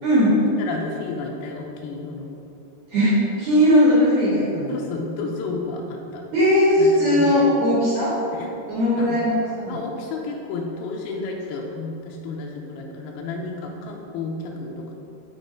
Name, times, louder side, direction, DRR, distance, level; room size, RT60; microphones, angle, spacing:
voice 1, 0.0-0.3 2.9-4.7 6.3-8.1 8.7-9.8, equal, 55° right, -9 dB, 2.5 m, -18 dB
voice 2, 0.6-2.3 4.7-6.2 6.8-7.4 8.3-8.6 9.0-9.2 9.7-14.9, left 3 dB, 80° left, -1 dB, 2.2 m, -32 dB
6.1 x 6.0 x 5.1 m, 2.7 s
omnidirectional pair, 5.2 m